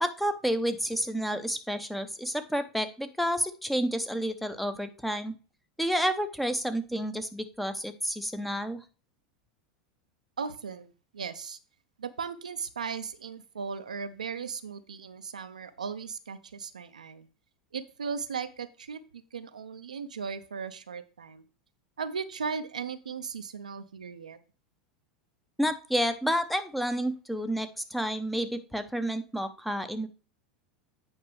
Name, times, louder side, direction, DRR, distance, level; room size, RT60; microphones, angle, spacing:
voice 1, 0.0-5.3 5.8-8.8 25.6-30.1, equal, ahead, 9 dB, 0.9 m, -30 dB
voice 2, 10.4-11.6 12.0-17.3 17.7-21.4 22.0-24.4, right 6 dB, 80° right, 11 dB, 0.6 m, -37 dB
8.8 x 5.4 x 3.3 m, 0.36 s
figure-of-eight pair, 85°, 4 cm